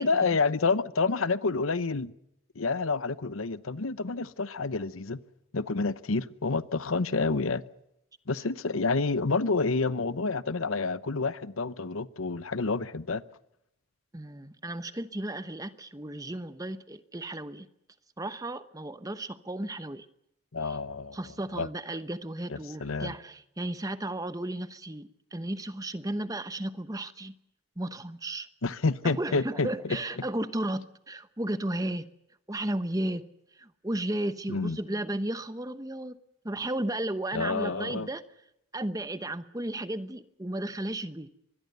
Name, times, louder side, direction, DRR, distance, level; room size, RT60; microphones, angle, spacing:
voice 1, 0.0-2.1 2.5-5.2 5.5-7.6 8.3-13.2 20.5-21.2 21.5-21.7 22.5-23.2 28.6-30.0 34.5-34.8 37.3-38.1, left 4 dB, 90° left, 0.9 m, -28 dB
voice 2, 14.1-17.7 18.2-20.1 20.6-20.8 21.1-27.3 27.8-28.5 29.0-32.1 32.5-33.2 33.6-36.2 36.4-38.2 38.7-41.3, right 1 dB, 15° right, 1.0 m, -34 dB
24.5 x 21.5 x 6.8 m
head